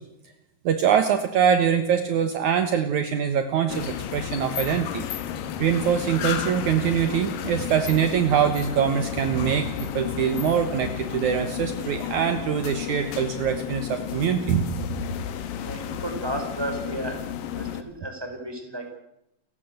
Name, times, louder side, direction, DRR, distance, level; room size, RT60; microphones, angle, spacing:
voice 1, 0.7-5.1 5.6-9.7 9.9-14.8, right 8 dB, 65° right, 8 dB, 2.6 m, -23 dB
sound 1, 3.7-17.8, left 9 dB, 85° left, 3.1 m, -32 dB
voice 2, 15.5-17.2 17.5-19.0, right 1 dB, 5° right, 4 dB, 4.7 m, -33 dB
30.0 x 16.0 x 8.0 m, 0.82 s
omnidirectional pair, 3.9 m